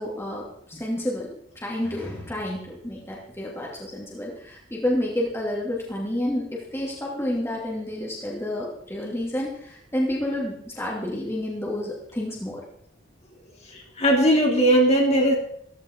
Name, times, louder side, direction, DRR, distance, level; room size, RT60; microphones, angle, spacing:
voice 1, 0.0-12.6, left 1 dB, 15° left, -3 dB, 2.8 m, -30 dB
voice 2, 13.7-15.4, right 1 dB, 35° left, 0 dB, 3.5 m, -19 dB
15.0 x 15.0 x 4.7 m, 0.68 s
head